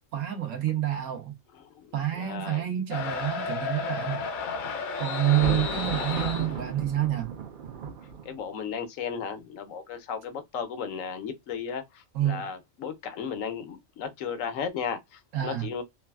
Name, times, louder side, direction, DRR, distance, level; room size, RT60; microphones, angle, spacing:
voice 1, 0.1-1.3 1.9-4.2 5.0-7.3 12.1-12.5 15.3-15.7, right 12 dB, 80° right, 1.2 m, -28 dB
voice 2, 1.5-2.6 4.4-4.9 5.2-5.8 8.2-15.8, left 7 dB, 85° left, 1.0 m, -35 dB
sound 1, 2.9-6.6, left 5 dB, 60° left, 0.5 m, -32 dB
Thunder, 5.2-8.6, right 5 dB, 60° right, 0.5 m, -36 dB
3.2 x 2.3 x 2.2 m
omnidirectional pair, 1.3 m